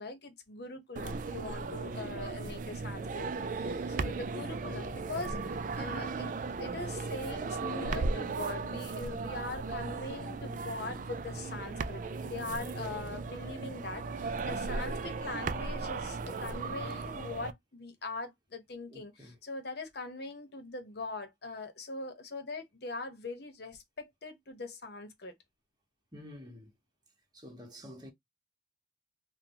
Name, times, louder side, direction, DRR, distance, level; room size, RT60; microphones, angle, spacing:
voice 1, 0.0-5.4 5.7-25.3, left 3 dB, 60° left, 0.9 m, -42 dB
sound 1, 1.0-17.5, right 4 dB, 45° right, 0.4 m, -36 dB
voice 2, 18.9-19.4 26.1-26.7 27.3-28.1, left 1 dB, 20° right, 1.2 m, -49 dB
3.8 x 2.3 x 2.9 m
head